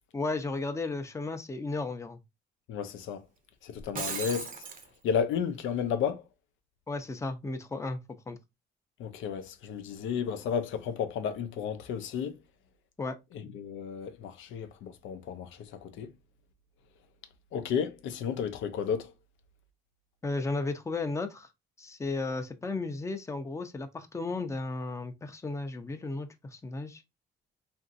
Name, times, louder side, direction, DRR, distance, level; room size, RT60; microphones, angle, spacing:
voice 1, 0.1-2.2 6.9-8.0 8.3-8.4 13.0-13.2 20.2-21.5 21.8-27.0, left 3 dB, 15° left, 0.5 m, -34 dB
voice 2, 2.7-3.3 3.6-4.5 5.0-6.2 9.0-12.4 13.5-16.1 17.5-19.1, left 7 dB, 80° left, 0.5 m, -32 dB
Shatter, 3.8-4.9, right 5 dB, 45° right, 0.6 m, -36 dB
2.9 x 2.5 x 2.4 m
cardioid pair, 90°, 20 cm